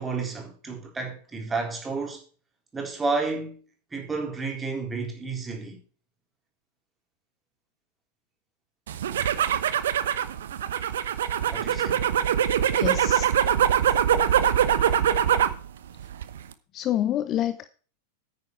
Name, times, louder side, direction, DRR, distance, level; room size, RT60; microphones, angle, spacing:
voice 1, 0.0-2.2 2.7-3.6 3.9-5.8 11.5-12.0, right 4 dB, 15° right, 3.8 m, -31 dB
sound 1, 8.9-15.6 16.0-16.5, right 9 dB, 60° right, 0.9 m, -23 dB
voice 2, 12.8-13.3 16.7-17.7, left 11 dB, 35° left, 0.7 m, -27 dB
9.6 x 9.5 x 4.5 m
figure-of-eight pair, 90°, 0 cm